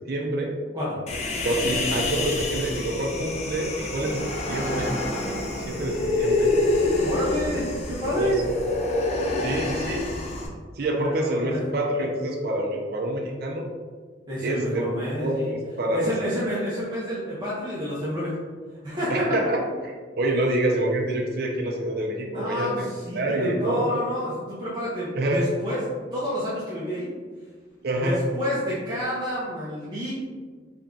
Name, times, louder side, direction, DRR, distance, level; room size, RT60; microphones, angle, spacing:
voice 1, 0.1-0.5 1.4-6.5 8.1-8.3 9.4-10.0 10.8-13.6 14.4-14.8 15.2-16.3 19.1-19.6 20.2-22.8 23.2-23.9 25.2-25.4 27.8-28.2, right 1 dB, 55° right, 0 dB, 0.5 m, -27 dB
Human voice, 1.1-10.5, left 2 dB, 35° left, 0.6 m, -27 dB
voice 2, 7.0-8.4 10.9-11.7 14.3-15.5 15.9-18.3 18.8-19.3 22.3-25.8 26.1-27.1 28.0-30.1, equal, 25° right, -9 dB, 0.8 m, -29 dB
3.5 x 2.8 x 3.7 m, 1.5 s
head